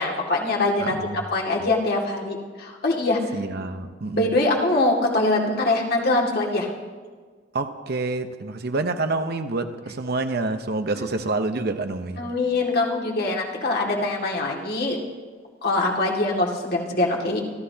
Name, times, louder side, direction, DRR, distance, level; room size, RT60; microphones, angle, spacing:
voice 1, 0.0-1.0 1.3-3.3 4.1-6.7 12.2-15.0 15.6-17.4, left 2 dB, 60° left, -1 dB, 2.2 m, -23 dB
voice 2, 0.8-1.2 3.3-4.3 7.5-12.2, right 3 dB, 60° right, 8 dB, 0.9 m, -27 dB
26.5 x 13.5 x 2.9 m, 1.5 s
head